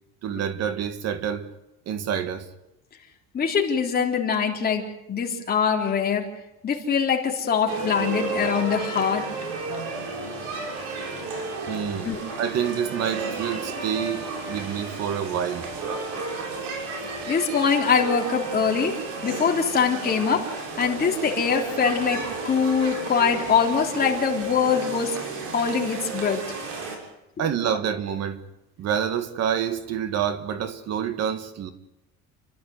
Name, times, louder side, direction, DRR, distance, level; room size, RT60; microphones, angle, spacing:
voice 1, 0.2-1.5 1.9-2.5 11.7-15.7 27.4-28.4 28.8-31.7, right 8 dB, 55° right, 1.8 m, -27 dB
voice 2, 3.3-6.3 6.6-9.3 12.0-12.2 17.3-19.0 19.2-25.2 25.5-26.4, left 6 dB, 30° left, 3.5 m, -23 dB
sound 1, 7.7-27.0, right 3 dB, 75° right, 6.4 m, -33 dB
29.5 x 12.5 x 9.5 m
cardioid pair, 145°, 32 cm